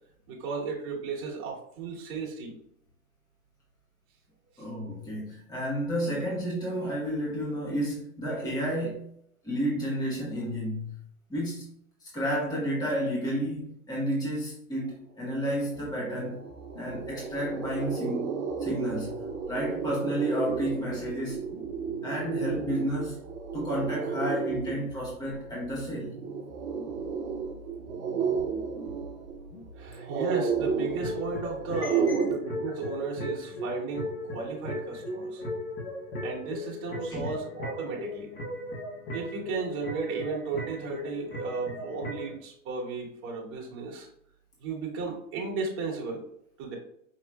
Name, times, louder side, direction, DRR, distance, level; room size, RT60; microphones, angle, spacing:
voice 1, 0.3-2.6 4.5-4.6 29.7-35.4 36.2-38.3 39.1-44.1 44.6-46.3 46.6-46.8, right 4 dB, 30° right, -2 dB, 1.6 m, -35 dB
voice 2, 4.6-9.1 9.4-11.0 11.3-11.7 12.0-16.4 16.8-18.3 18.6-19.2 19.5-21.4 22.0-23.2 23.5-26.2 31.8-32.1 37.1-37.3, equal, 10° left, -5 dB, 1.3 m, -31 dB
sound 1, 15.7-31.7, left 2 dB, 55° left, 0.8 m, -48 dB
sound 2, 15.7-15.8 16.1-32.3, right 6 dB, 60° right, 1.6 m, -32 dB
sound 3, 30.6-42.4, left 1 dB, 30° left, 1.3 m, -37 dB
5.6 x 3.1 x 2.3 m, 0.71 s
hypercardioid pair, 125°, 41 cm